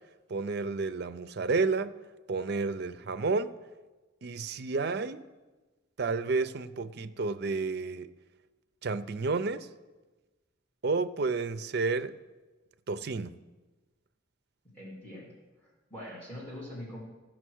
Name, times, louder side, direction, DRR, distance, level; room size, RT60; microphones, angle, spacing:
voice 1, 0.3-2.0 2.3-3.5 4.2-5.3 6.0-8.1 8.8-9.7 10.8-12.1 12.9-13.4, right 4 dB, 55° right, 0.5 m, -31 dB
voice 2, 14.7-17.0, left 1 dB, 10° left, 2.9 m, -44 dB
14.5 x 6.2 x 6.4 m
head